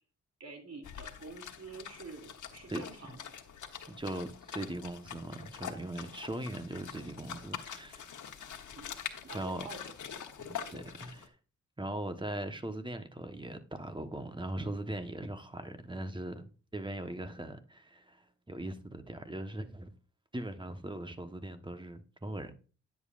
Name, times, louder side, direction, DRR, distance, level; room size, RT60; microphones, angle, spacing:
voice 1, 0.4-3.2 8.7-8.9 9.2-9.9, right 3 dB, 55° right, 3.0 m, -47 dB
sound 1, 0.8-11.3, left 8 dB, 70° left, 1.2 m, -45 dB
voice 2, 3.9-8.4 9.3-9.7 10.5-11.3 11.8-19.9 20.3-22.5, right 1 dB, 15° right, 1.2 m, -40 dB
10.0 x 7.4 x 2.5 m
cardioid pair, 55°, 31 cm